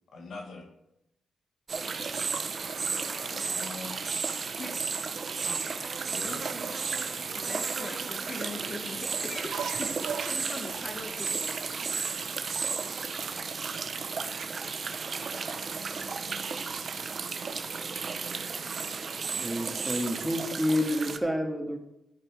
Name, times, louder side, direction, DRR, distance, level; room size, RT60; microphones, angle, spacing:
voice 1, 0.1-0.7 3.3-4.3 6.1-6.5, left 3 dB, 65° left, 3 dB, 1.6 m, -42 dB
sound 1, 1.7-21.2, right 5 dB, 50° right, 0.9 m, -33 dB
voice 2, 7.3-9.9 10.2-11.5, left 2 dB, 40° left, 4 dB, 1.5 m, -41 dB
sound 2, 9.3-17.6, right 7 dB, 70° right, 0.7 m, -44 dB
voice 3, 19.4-21.8, left 1 dB, 10° right, 2 dB, 2.3 m, -29 dB
14.0 x 5.4 x 4.9 m, 0.88 s
hypercardioid pair, 40°, 0 cm